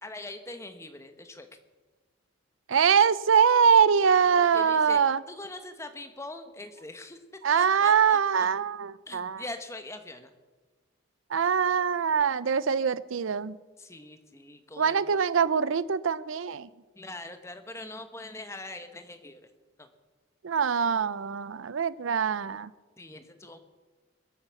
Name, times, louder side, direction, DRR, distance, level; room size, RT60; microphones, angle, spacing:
voice 1, 0.0-1.5 4.5-7.2 7.5-8.5 9.1-10.3 13.8-15.2 16.9-19.5 19.8-19.9 23.0-23.6, left 2 dB, 15° left, 8 dB, 1.2 m, -42 dB
voice 2, 2.7-5.2 7.4-9.4 11.3-13.6 14.8-16.7 20.4-22.7, right 7 dB, 90° right, 17 dB, 0.5 m, -23 dB
22.0 x 8.2 x 7.1 m, 1.3 s
head